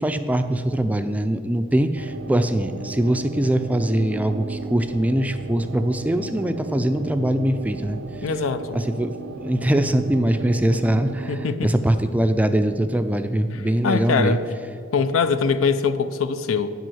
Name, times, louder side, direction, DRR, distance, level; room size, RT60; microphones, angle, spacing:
voice 1, 0.0-8.0 8.7-9.1 9.4-14.4, right 1 dB, 5° right, 8 dB, 0.3 m, -22 dB
sound 1, 1.9-11.5, right 3 dB, 90° right, 0.6 m, -34 dB
voice 2, 8.2-8.8 11.3-11.7 13.8-14.4 14.9-16.7, left 5 dB, 90° left, 12 dB, 0.6 m, -22 dB
9.2 x 5.5 x 7.7 m, 2.2 s
head